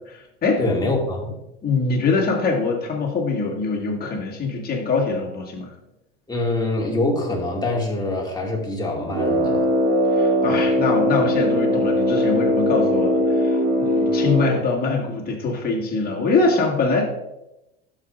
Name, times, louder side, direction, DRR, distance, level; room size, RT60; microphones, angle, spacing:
voice 1, 0.1-0.9 1.6-5.7 10.2-17.0, left 3 dB, 30° left, -2 dB, 1.9 m, -23 dB
voice 2, 0.6-1.4 6.3-9.7, left 2 dB, 15° left, -2 dB, 2.2 m, -24 dB
Brass instrument, 9.1-14.7, left 1 dB, 55° right, 1.3 m, -20 dB
12.0 x 4.9 x 2.5 m, 0.91 s
hypercardioid pair, 75°, 31 cm